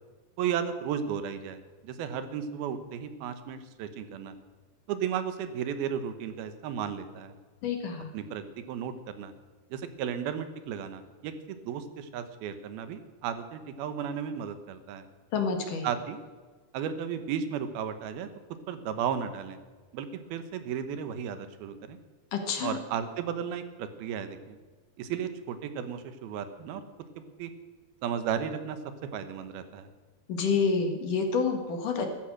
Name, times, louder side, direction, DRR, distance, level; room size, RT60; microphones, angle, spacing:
voice 1, 0.4-4.3 4.9-7.3 8.1-9.3 9.7-15.1 15.8-16.2 16.7-18.3 18.7-19.6 19.9-22.0 22.6-24.6 25.0-26.8 27.4-27.5 28.0-29.9, right 8 dB, 80° right, 10 dB, 3.0 m, -34 dB
voice 2, 7.6-8.1 15.3-15.9 22.3-22.8 30.3-32.1, left 5 dB, 60° left, 4 dB, 3.3 m, -28 dB
14.5 x 13.5 x 6.4 m, 1.4 s
omnidirectional pair, 4.3 m